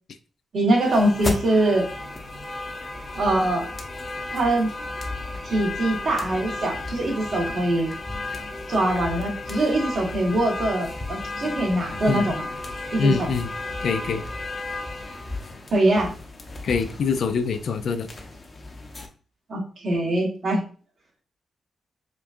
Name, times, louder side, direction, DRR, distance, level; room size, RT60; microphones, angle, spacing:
voice 1, 0.5-1.9 3.1-3.7 4.3-4.7 5.4-7.9 8.7-12.5 12.9-13.3 15.7-16.1 19.5-20.6, right 1 dB, 60° right, -1 dB, 1.4 m, -23 dB
sound 1, 0.7-19.1, left 2 dB, 35° left, 0.8 m, -34 dB
voice 2, 13.0-13.5 13.8-14.2 16.6-18.1, left 5 dB, 70° left, 9 dB, 0.4 m, -24 dB
5.0 x 2.3 x 2.5 m, 0.39 s
cardioid pair, 75°, 0 cm